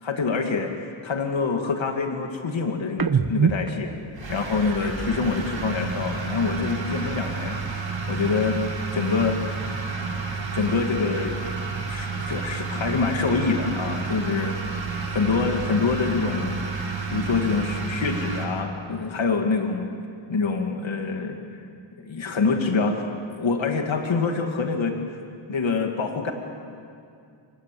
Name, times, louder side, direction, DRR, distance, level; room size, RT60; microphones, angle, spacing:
voice 1, 0.0-4.0 4.3-8.6 8.9-9.4 10.5-11.4 11.9-14.6 15.1-16.6 17.1-19.9 20.3-21.4 22.0-23.0 23.3-25.2 25.5-26.3, left 4 dB, 75° left, 3 dB, 2.3 m, -26 dB
sound 1, 2.9-6.5 6.8-8.7 8.9-10.8 11.2-13.0, right 6 dB, 50° right, 1.1 m, -32 dB
sound 2, 4.2-18.4, right 4 dB, 70° right, 4.4 m, -30 dB
27.5 x 25.5 x 7.7 m, 2.4 s
wide cardioid pair, 85°, 46 cm